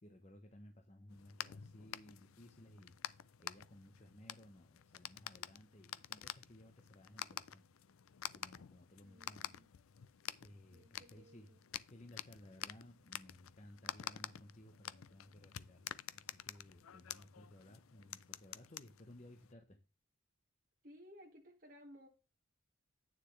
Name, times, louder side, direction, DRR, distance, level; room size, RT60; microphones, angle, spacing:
voice 1, 0.0-7.7 8.3-9.5 10.4-11.5 11.9-15.9 16.1-19.8, left 1 dB, 35° left, 0.9 m, -59 dB
sound 1, 1.1-19.5, left 11 dB, 85° left, 0.4 m, -49 dB
voice 2, 9.0-9.7 10.7-11.6 20.8-22.1, equal, 40° right, 1.9 m, -59 dB
9.3 x 6.7 x 3.2 m
head